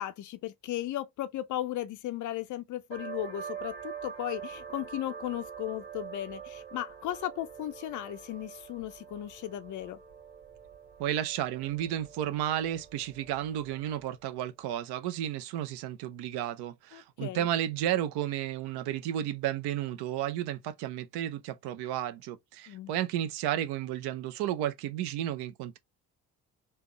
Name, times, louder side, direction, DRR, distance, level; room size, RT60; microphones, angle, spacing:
voice 1, 0.0-10.0 16.9-17.5 22.7-22.9, left 13 dB, 40° left, 0.5 m, -36 dB
sound 1, 2.9-14.2, right 7 dB, 80° right, 1.9 m, -45 dB
voice 2, 11.0-25.8, right 11 dB, 55° right, 0.6 m, -32 dB
3.3 x 2.8 x 3.0 m
figure-of-eight pair, 40°, 48 cm